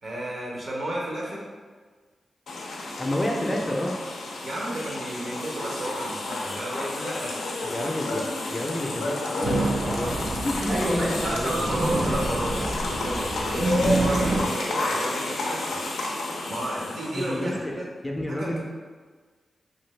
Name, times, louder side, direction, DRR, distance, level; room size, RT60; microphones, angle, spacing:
voice 1, 0.0-1.4 4.4-7.4 8.2-8.4 10.7-15.8 16.5-17.9 18.3-18.6, right 1 dB, 70° right, -3 dB, 0.8 m, -32 dB
sound 1, 2.5-17.6, left 2 dB, 85° left, 0.3 m, -31 dB
voice 2, 3.0-3.9 7.6-8.2 8.5-12.2 17.1-18.6, left 1 dB, 20° left, 1 dB, 0.4 m, -30 dB
sound 2, 9.4-14.4, right 2 dB, 50° right, 0.4 m, -28 dB
2.6 x 2.5 x 3.1 m, 1.5 s
cardioid pair, 55°, 0 cm